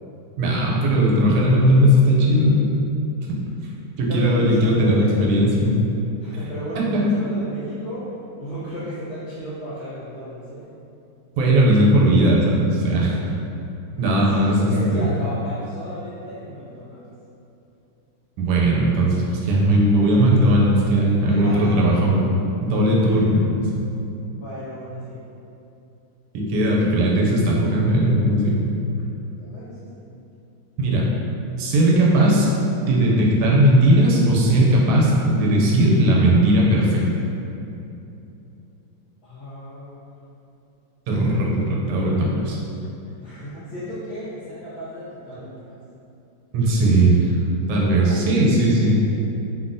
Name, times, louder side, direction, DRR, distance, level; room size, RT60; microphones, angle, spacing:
voice 1, 0.4-2.6 4.0-5.7 6.9-7.0 11.4-13.2 14.0-15.1 18.4-22.3 22.6-23.7 26.3-28.6 30.8-31.0 31.6-32.5 32.9-37.0 41.1-42.6 45.3-45.4 46.5-47.3 47.7-49.0, right 1 dB, 85° right, -3 dB, 1.5 m, -18 dB
voice 2, 4.1-5.3 6.2-8.1 8.4-10.7 14.1-17.0 21.2-22.1 23.0-23.2 24.4-25.2 29.4-30.0 39.2-40.0 41.9-42.3 43.2-45.8 47.9-48.2 48.5-49.3, equal, 70° left, -13 dB, 0.9 m, -34 dB
3.7 x 2.1 x 2.5 m, 2.8 s
omnidirectional pair, 2.4 m